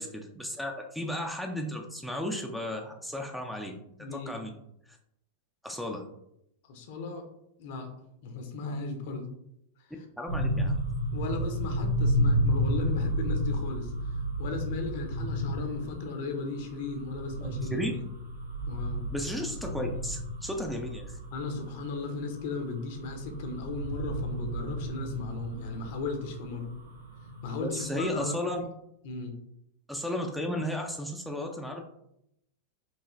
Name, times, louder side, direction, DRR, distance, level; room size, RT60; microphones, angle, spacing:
voice 1, 0.0-3.7 4.1-4.5 4.9-5.0 5.6-6.0 10.2-10.8 17.4-17.9 19.1-21.2 27.6-28.6 29.9-31.8, left 1 dB, ahead, 3 dB, 0.6 m, -34 dB
voice 2, 4.0-4.4 6.7-7.2 7.6-7.9 8.2-9.3 11.1-17.9 18.7-19.1 21.3-26.7 27.4-28.4 29.0-29.4, left 3 dB, 50° left, 5 dB, 0.8 m, -36 dB
sound 1, 10.3-28.1, equal, 75° right, 1.5 m, -32 dB
4.6 x 3.1 x 3.1 m, 0.77 s
figure-of-eight pair, 90°, 0 cm